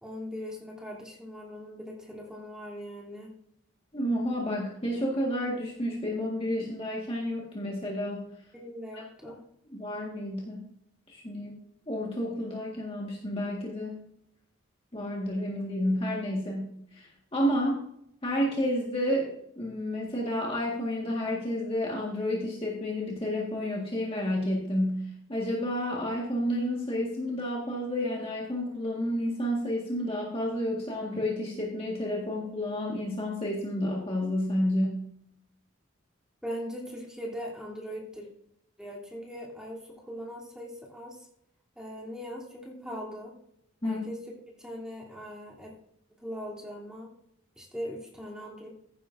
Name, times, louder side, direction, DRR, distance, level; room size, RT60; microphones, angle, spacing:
voice 1, 0.0-3.3 8.5-9.4 36.4-38.3 38.8-41.2 41.7-43.3 43.8-44.2 44.6-45.7 46.2-47.1 47.5-48.7, equal, 5° right, -4 dB, 3.3 m, -40 dB
voice 2, 3.9-8.3 9.7-10.6 11.1-14.0 14.9-17.8 18.2-35.0 43.8-44.0, equal, 25° left, -3 dB, 1.8 m, -30 dB
15.0 x 9.8 x 2.7 m, 0.73 s
head